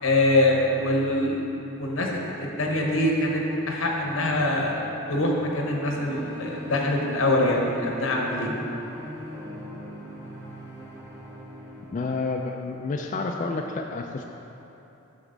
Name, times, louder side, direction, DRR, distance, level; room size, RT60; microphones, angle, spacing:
voice 1, 0.0-1.5 1.8-4.8 5.1-8.5, left 1 dB, 85° left, 0 dB, 1.1 m, -24 dB
sound 1, 4.0-12.5, equal, 15° right, 1.1 m, -41 dB
voice 2, 11.9-14.2, left 3 dB, 40° left, 2 dB, 0.3 m, -29 dB
7.8 x 6.2 x 3.9 m, 3.0 s
head